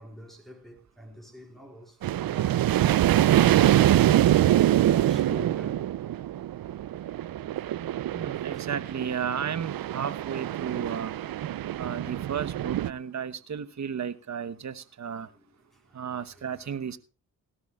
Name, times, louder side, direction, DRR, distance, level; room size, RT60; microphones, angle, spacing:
voice 1, 0.0-2.0 2.2-5.9 8.5-8.7 15.1-15.4 15.9-16.7, equal, ahead, 4.3 m, -46 dB
sound 1, 2.0-12.9, right 12 dB, 60° right, 0.6 m, -24 dB
voice 2, 8.1-11.1 11.8-15.3 15.9-17.0, right 7 dB, 45° right, 1.1 m, -34 dB
18.0 x 12.5 x 2.4 m
supercardioid pair, 45°, 39 cm